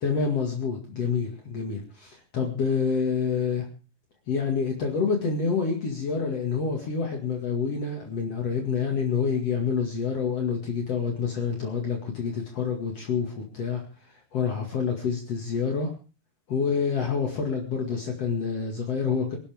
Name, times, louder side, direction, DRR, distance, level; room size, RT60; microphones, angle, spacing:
voice 1, 0.0-3.7 4.3-13.8 14.3-15.9 16.5-19.4, left 5 dB, 55° left, 1 dB, 3.0 m, -27 dB
26.0 x 12.0 x 3.6 m, 0.36 s
omnidirectional pair, 3.6 m